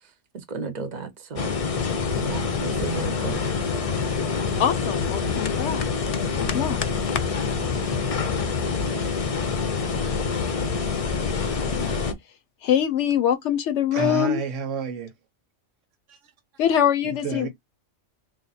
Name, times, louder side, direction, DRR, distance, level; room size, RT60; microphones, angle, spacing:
voice 1, 0.0-1.6 2.2-3.5, right 4 dB, 45° right, 0.7 m, -34 dB
sound 1, 1.4-12.1, left 5 dB, 40° left, 0.5 m, -26 dB
voice 2, 4.6-5.8 6.1-6.8 11.8-11.9 12.6-14.4 16.6-17.5, left 9 dB, 70° left, 0.8 m, -23 dB
voice 3, 13.9-15.1 16.1-16.2 17.0-17.5, right 5 dB, 80° right, 1.1 m, -30 dB
3.2 x 2.5 x 4.1 m
omnidirectional pair, 1.3 m